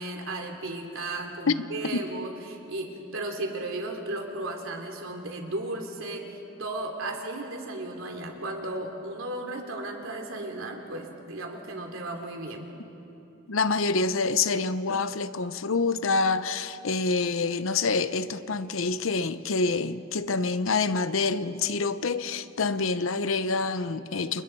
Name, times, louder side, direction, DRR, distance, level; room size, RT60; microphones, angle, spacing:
voice 1, 0.0-12.7, right 2 dB, 80° right, 3.1 m, -35 dB
voice 2, 13.5-24.4, left 4 dB, 75° left, 0.8 m, -27 dB
29.5 x 28.5 x 4.7 m
head